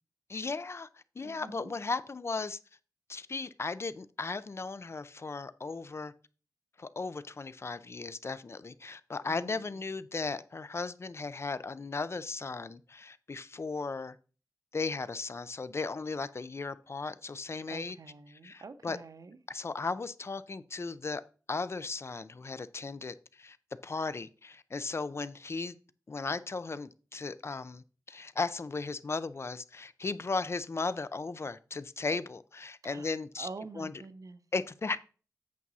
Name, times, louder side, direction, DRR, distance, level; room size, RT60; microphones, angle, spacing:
voice 1, 0.3-0.9 1.2-2.6 3.1-6.1 6.8-14.2 14.7-18.0 18.3-19.0 19.5-21.2 21.5-23.6 23.8-25.8 26.1-33.5 33.8-33.9 34.5-35.0, left 4 dB, 45° left, 0.5 m, -36 dB
voice 2, 1.2-1.7 9.3-9.8 17.6-19.4 32.8-33.1 33.4-34.4, right 4 dB, 65° right, 0.8 m, -46 dB
8.4 x 6.0 x 4.1 m
wide cardioid pair, 100°, 6 cm